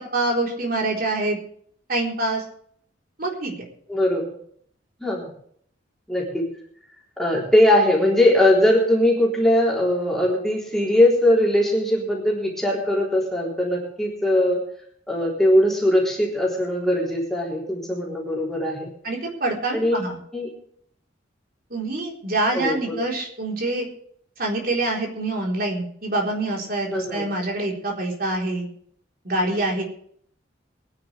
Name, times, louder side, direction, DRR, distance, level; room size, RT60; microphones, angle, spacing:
voice 1, 0.0-1.4 1.9-2.4 3.2-3.5 19.0-20.2 21.7-23.9 24.4-28.7 29.2-29.8, right 2 dB, 55° right, 0 dB, 4.0 m, -25 dB
voice 2, 3.9-4.4 5.0-5.3 6.1-6.5 7.2-14.6 15.1-18.9 19.7-20.1 20.3-20.5 22.5-23.0 26.9-27.2, left 1 dB, ahead, -4 dB, 3.8 m, -20 dB
23.0 x 10.0 x 3.4 m, 0.63 s
head